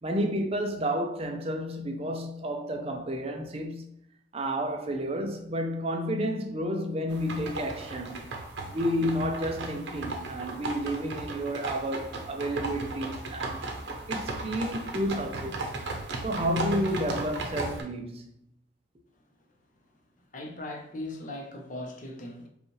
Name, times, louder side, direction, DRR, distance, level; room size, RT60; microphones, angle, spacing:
voice 1, 0.0-4.0 4.3-8.4 8.7-13.7 14.1-15.7 16.2-18.3, equal, 35° right, 0.5 m, -31 dB
sound 1, 7.1-17.8, right 2 dB, 80° right, 0.8 m, -36 dB
voice 2, 19.9-22.5, left 1 dB, 45° left, 0.7 m, -39 dB
5.1 x 2.4 x 3.2 m
head